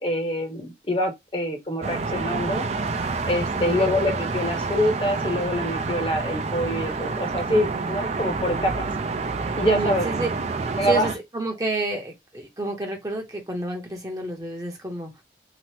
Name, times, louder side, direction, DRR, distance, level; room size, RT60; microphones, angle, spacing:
voice 1, 0.0-2.7 3.3-8.9 9.5-10.1 10.8-11.1, equal, 30° left, 0.8 m, -25 dB
sound 1, 1.8-11.2, right 4 dB, 40° right, 0.3 m, -28 dB
voice 2, 9.6-15.1, right 2 dB, 20° right, 0.7 m, -30 dB
2.8 x 2.0 x 3.1 m
head